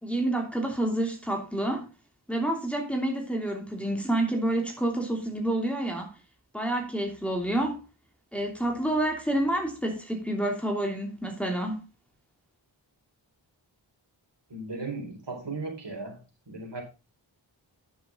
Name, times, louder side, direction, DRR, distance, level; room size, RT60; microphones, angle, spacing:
voice 1, 0.0-1.9 2.3-6.1 6.5-7.8 8.3-11.8, right 1 dB, 5° left, 2.9 m, -28 dB
voice 2, 14.5-16.2 16.5-16.8, right 3 dB, 60° right, 4.7 m, -36 dB
11.5 x 7.1 x 3.8 m
wide cardioid pair, 50°, 48 cm